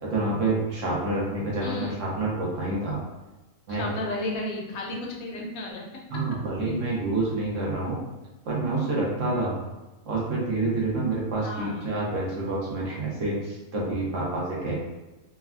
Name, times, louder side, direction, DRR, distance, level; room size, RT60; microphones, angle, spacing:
voice 1, 0.0-3.0 3.7-3.8 6.1-8.0 8.5-9.5 10.1-14.8, right 2 dB, 65° right, -4 dB, 1.0 m, -28 dB
voice 2, 1.6-2.0 3.7-5.8 6.6-6.8 11.4-11.9, left 2 dB, 75° left, -1 dB, 1.0 m, -33 dB
3.3 x 2.2 x 2.3 m, 1.1 s
omnidirectional pair, 1.5 m